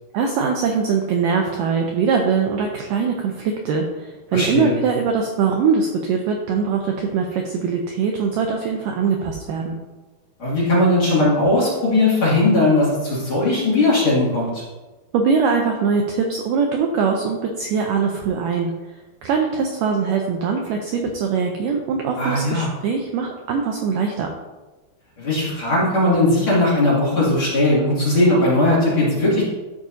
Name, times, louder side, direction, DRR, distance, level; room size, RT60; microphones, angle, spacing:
voice 1, 0.1-9.8 15.1-18.7 19.2-24.3, right 5 dB, 85° right, 2 dB, 1.9 m, -22 dB
voice 2, 4.3-4.7 10.4-14.6 22.2-22.7 25.2-29.5, left 2 dB, 40° left, -7 dB, 2.6 m, -18 dB
13.0 x 4.8 x 2.7 m, 1.2 s
omnidirectional pair, 4.5 m